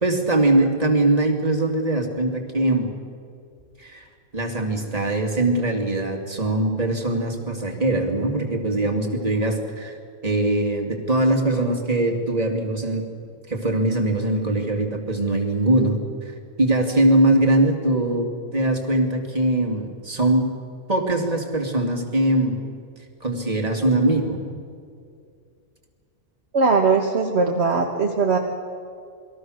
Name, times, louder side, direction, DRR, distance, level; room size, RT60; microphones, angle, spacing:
voice 1, 0.0-2.9 3.8-4.0 4.3-10.0 10.2-13.0 13.5-16.0 16.6-18.3 18.5-20.5 20.9-22.6 23.2-24.4, right 1 dB, 30° right, 2 dB, 2.6 m, -21 dB
voice 2, 26.5-28.4, right 4 dB, 50° right, 1 dB, 1.7 m, -20 dB
28.0 x 21.0 x 6.5 m, 2.3 s
omnidirectional pair, 1.4 m